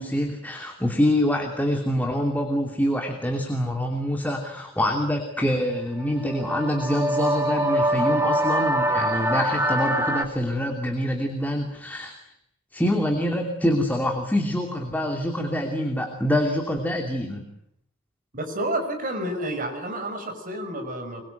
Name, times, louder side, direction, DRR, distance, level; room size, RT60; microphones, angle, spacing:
voice 1, 0.0-12.2 12.7-17.4, equal, 10° left, 3 dB, 2.8 m, -25 dB
sound 1, 6.0-10.3, right 1 dB, 10° right, 2.5 m, -24 dB
voice 2, 18.3-21.2, right 1 dB, 40° right, 6 dB, 6.0 m, -30 dB
25.0 x 23.5 x 9.2 m, 0.71 s
head